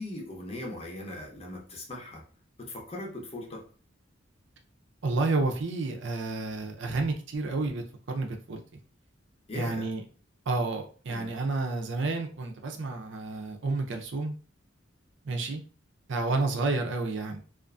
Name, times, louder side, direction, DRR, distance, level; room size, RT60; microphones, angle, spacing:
voice 1, 0.0-2.2 2.6-3.6 9.5-9.9 11.1-11.3, left 1 dB, 30° left, 0 dB, 0.7 m, -39 dB
voice 2, 5.0-8.6 9.5-10.0 10.5-14.3 15.2-15.6 16.1-17.4, right 3 dB, 65° right, 4 dB, 0.5 m, -30 dB
2.5 x 2.4 x 2.3 m, 0.39 s
head